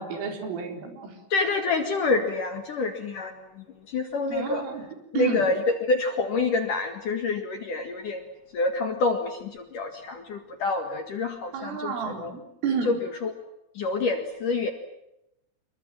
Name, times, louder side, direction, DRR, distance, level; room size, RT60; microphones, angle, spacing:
voice 1, 0.0-1.2 4.3-4.9 5.1-5.5 11.5-13.0, right 6 dB, 75° right, 4 dB, 6.6 m, -31 dB
voice 2, 1.3-4.6 5.1-8.2 8.5-11.9 12.2-12.3 12.9-13.0 13.2-13.3 13.8-14.7, left 3 dB, 55° left, 5 dB, 2.6 m, -27 dB
27.5 x 23.5 x 7.6 m, 0.86 s
omnidirectional pair, 5.8 m